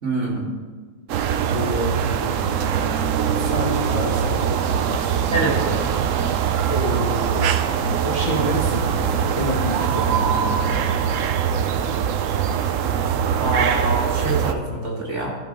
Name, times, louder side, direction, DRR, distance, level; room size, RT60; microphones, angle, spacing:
voice 1, 0.0-0.5 5.3-5.8 13.4-15.3, right 2 dB, 45° right, -2 dB, 1.9 m, -25 dB
sound 1, 1.1-14.5, right 8 dB, 70° right, 0.7 m, -22 dB
voice 2, 1.5-5.8 6.7-7.5 8.0-11.0, left 1 dB, 25° left, -2 dB, 0.9 m, -29 dB
14.0 x 5.4 x 5.2 m, 1.4 s
omnidirectional pair, 1.9 m